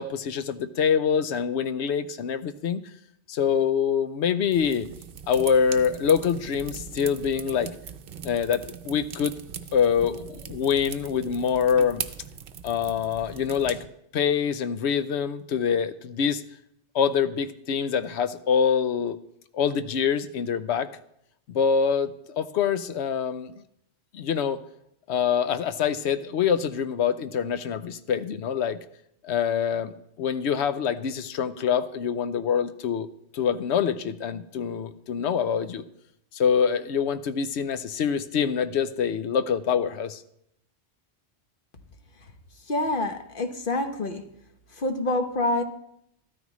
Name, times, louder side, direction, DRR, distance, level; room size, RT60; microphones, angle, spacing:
voice 1, 0.0-2.8 3.3-4.9 5.3-7.7 8.2-9.3 9.7-12.0 12.6-13.9 14.1-16.4 16.9-19.2 19.5-20.9 21.5-23.5 24.1-24.6 25.1-28.8 29.2-29.9 30.2-33.1 33.3-35.8 36.3-40.2, left 7 dB, 80° left, 11 dB, 0.9 m, -25 dB
sound 1, 4.5-13.9, right 7 dB, 60° right, 0.8 m, -40 dB
voice 2, 42.7-44.2 44.8-45.6, left 2 dB, 55° left, 6 dB, 1.1 m, -26 dB
13.5 x 13.0 x 3.1 m, 0.75 s
omnidirectional pair, 1.1 m